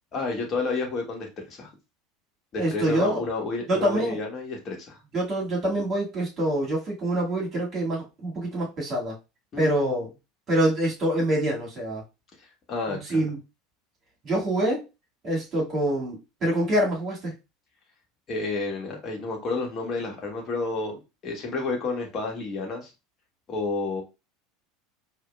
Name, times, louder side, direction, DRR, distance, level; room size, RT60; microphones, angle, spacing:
voice 1, 0.1-1.7 2.5-5.0 9.5-10.0 12.7-13.2 18.3-22.9 23.5-24.0, left 3 dB, 35° left, 1 dB, 1.4 m, -30 dB
voice 2, 2.6-3.2 3.7-4.2 5.1-9.2 9.6-10.1 10.5-12.0 12.9-13.4 14.2-14.8 15.2-17.3, right 1 dB, 35° right, -3 dB, 2.1 m, -25 dB
4.8 x 2.8 x 2.3 m, 0.26 s
figure-of-eight pair, 75°, 0 cm